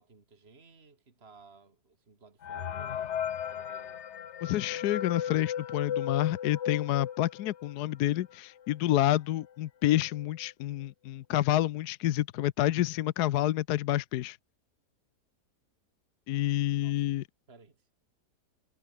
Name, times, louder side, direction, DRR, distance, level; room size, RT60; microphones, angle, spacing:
voice 1, 0.0-4.0 16.7-17.0 17.5-17.9, right 4 dB, 35° right, 2.9 m, -57 dB
sound 1, 2.4-7.9 8.3-8.4 8.6-8.8 9.5-9.6 10.0-10.3, left 9 dB, 50° left, 1.0 m, -36 dB
voice 2, 4.4-14.4 16.3-17.2, left 14 dB, 75° left, 1.2 m, -28 dB
omnidirectional pair, 1.8 m